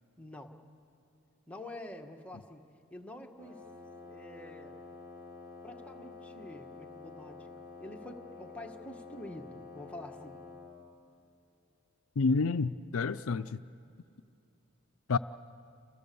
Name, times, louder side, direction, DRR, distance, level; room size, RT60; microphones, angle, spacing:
voice 1, 0.2-0.6 1.5-3.6 4.0-4.8 5.6-7.5 7.8-10.4, left 1 dB, 5° left, 2 dB, 1.6 m, -47 dB
Wind instrument woodwind instrument, 3.4-10.8, left 3 dB, 15° right, 5.2 m, -49 dB
voice 2, 12.2-13.6 15.1-15.2, left 4 dB, 75° left, 13 dB, 0.5 m, -29 dB
30.0 x 28.0 x 7.0 m, 2.6 s
head